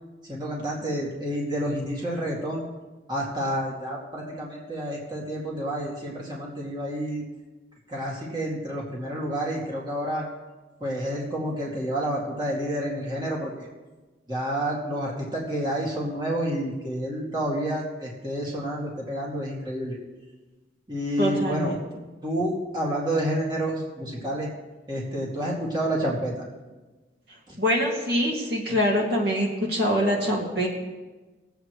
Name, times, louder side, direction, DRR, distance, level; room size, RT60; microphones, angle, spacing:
voice 1, 0.3-2.6 3.1-7.2 7.9-10.2 10.8-13.7 14.3-20.0 20.9-21.8 22.2-24.5 24.9-26.4 27.5-27.6, right 1 dB, 25° right, -4 dB, 2.3 m, -29 dB
voice 2, 21.2-21.8 27.6-30.7, equal, 60° right, -2 dB, 2.3 m, -24 dB
21.5 x 8.1 x 3.2 m, 1.2 s
head